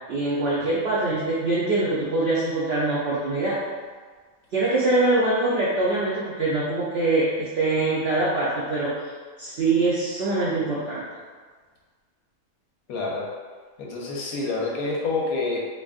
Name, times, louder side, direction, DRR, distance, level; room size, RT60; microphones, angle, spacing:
voice 1, 0.0-3.6 4.5-8.9 9.4-11.0, right 2 dB, 55° right, -8 dB, 0.8 m, -23 dB
voice 2, 12.9-13.2 13.8-15.6, left 3 dB, 85° left, -3 dB, 1.2 m, -27 dB
4.3 x 2.8 x 2.4 m, 1.5 s
omnidirectional pair, 1.5 m